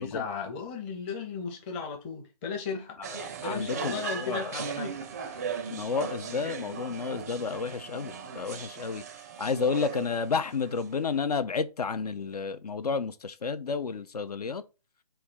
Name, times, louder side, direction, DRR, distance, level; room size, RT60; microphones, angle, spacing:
voice 1, 0.0-3.0 3.4-5.7, left 5 dB, 15° left, 0.7 m, -36 dB
sound 1, 3.0-11.2, right 6 dB, 25° right, 0.4 m, -38 dB
voice 2, 3.4-4.5 5.7-9.0 9.4-14.6, left 5 dB, 75° left, 0.4 m, -31 dB
4.3 x 2.4 x 4.2 m
figure-of-eight pair, 140°, 20 cm